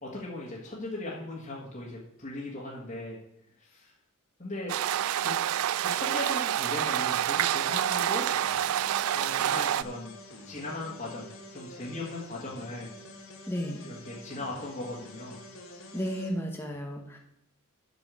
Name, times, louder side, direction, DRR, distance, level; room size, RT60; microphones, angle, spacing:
voice 1, 0.0-3.2 3.6-3.9 4.4-4.7 5.2-5.3 5.8-8.3 9.1-10.2 10.5-12.9 13.8-15.4, left 2 dB, 35° left, -5 dB, 1.9 m, -38 dB
sound 1, 4.7-9.8, right 11 dB, 75° right, 0.3 m, -27 dB
sound 2, 8.3-16.3, left 1 dB, 65° left, 1.9 m, -47 dB
voice 2, 13.5-13.9 15.9-17.2, equal, 10° left, 1 dB, 1.1 m, -33 dB
8.2 x 6.1 x 7.6 m, 0.77 s
head